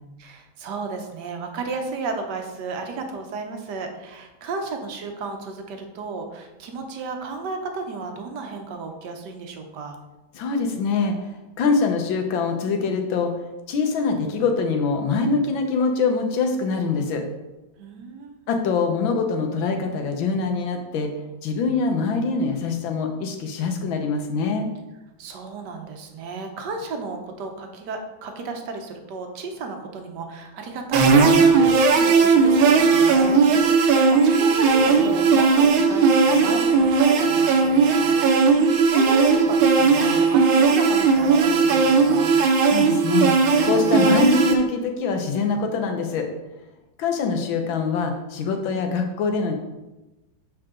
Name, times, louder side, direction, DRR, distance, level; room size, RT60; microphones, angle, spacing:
voice 1, 0.2-10.0 17.8-18.4 25.2-42.3, right 4 dB, 60° right, 4 dB, 1.3 m, -33 dB
voice 2, 10.3-11.3 11.6-13.3 13.7-17.2 18.5-21.1 21.4-24.6 42.7-46.3 47.0-49.5, left 4 dB, 75° left, 4 dB, 1.6 m, -24 dB
sound 1, 30.9-44.5, right 4 dB, 85° right, 1.5 m, -17 dB
7.3 x 4.8 x 3.7 m, 1.0 s
omnidirectional pair, 2.2 m